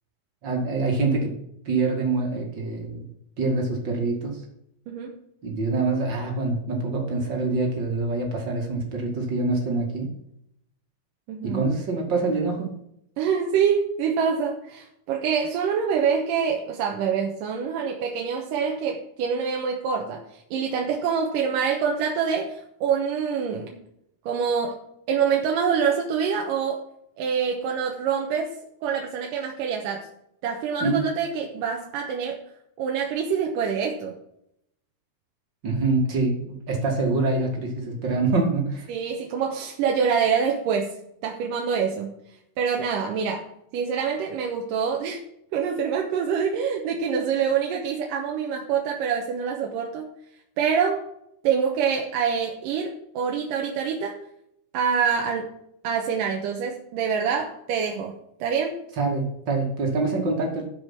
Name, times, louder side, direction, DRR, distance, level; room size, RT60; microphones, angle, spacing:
voice 1, 0.4-1.4 1.7-3.1 3.4-4.4 5.4-10.1 11.4-12.7 30.8-31.1 35.6-38.9 59.0-60.7, right 3 dB, 35° right, 1 dB, 2.1 m, -25 dB
voice 2, 11.3-11.6 13.2-23.8 24.3-24.8 25.1-26.8 27.2-28.6 28.8-30.1 30.4-32.4 32.8-34.1 38.9-41.0 41.2-42.2 42.6-43.5 43.7-45.2 45.5-50.1 50.6-51.0 51.4-54.2 54.7-55.5 55.8-58.8, right 6 dB, 70° right, 1 dB, 2.4 m, -25 dB
12.5 x 5.2 x 5.8 m, 0.76 s
omnidirectional pair, 4.4 m